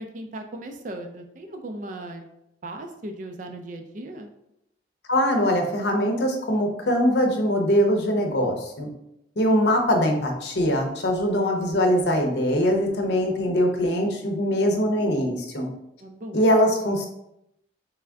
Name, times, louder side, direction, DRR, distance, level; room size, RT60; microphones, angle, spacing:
voice 1, 0.0-2.3 2.6-4.3 16.0-16.4, right 1 dB, 45° right, 5 dB, 0.4 m, -37 dB
voice 2, 5.1-8.9 9.4-15.7 16.3-17.1, equal, 65° left, 3 dB, 0.7 m, -22 dB
3.5 x 3.3 x 3.5 m, 0.81 s
head